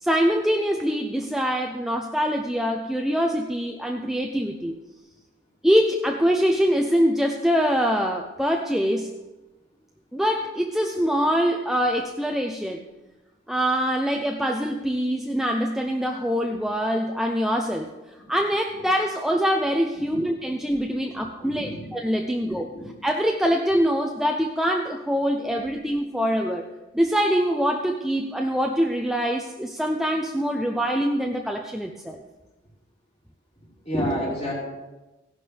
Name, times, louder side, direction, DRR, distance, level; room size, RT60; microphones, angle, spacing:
voice 1, 0.0-4.7 5.6-9.1 10.1-12.8 13.5-17.9 18.3-22.7 23.0-26.6 26.9-32.2, equal, ahead, 2 dB, 0.6 m, -24 dB
voice 2, 21.4-21.8 22.4-22.9 33.8-34.5, equal, 35° left, -5 dB, 4.5 m, -29 dB
16.5 x 11.5 x 3.4 m, 1.1 s
head